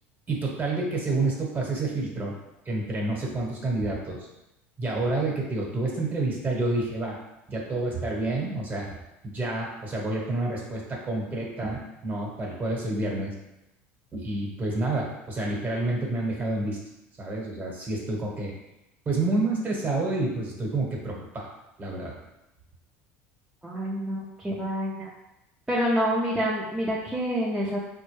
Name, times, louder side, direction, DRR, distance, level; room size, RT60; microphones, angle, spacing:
voice 1, 0.3-2.3 2.6-4.3 4.8-7.2 7.5-8.9 9.2-13.3 14.1-16.8 17.2-18.5 19.0-21.5 21.8-22.1, right 2 dB, 30° right, -2 dB, 1.2 m, -29 dB
voice 2, 23.6-25.1 25.7-27.8, equal, 10° right, -6 dB, 0.6 m, -27 dB
4.1 x 2.2 x 3.2 m, 0.91 s
supercardioid pair, 90°, 7 cm